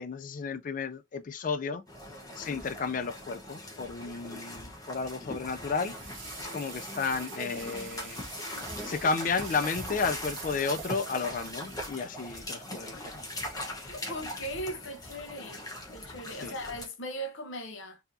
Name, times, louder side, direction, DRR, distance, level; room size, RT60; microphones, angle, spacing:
voice 1, 0.0-1.8 2.4-6.1 6.4-8.2 8.8-13.2 16.4-16.5, left 4 dB, 40° left, 0.3 m, -32 dB
sound 1, 1.9-16.8, left 1 dB, 20° left, 1.0 m, -41 dB
sound 2, 5.8-12.5, right 15 dB, 70° right, 0.3 m, -47 dB
voice 2, 13.8-15.6 15.9-18.0, equal, 75° left, 0.8 m, -39 dB
4.3 x 2.8 x 2.6 m
head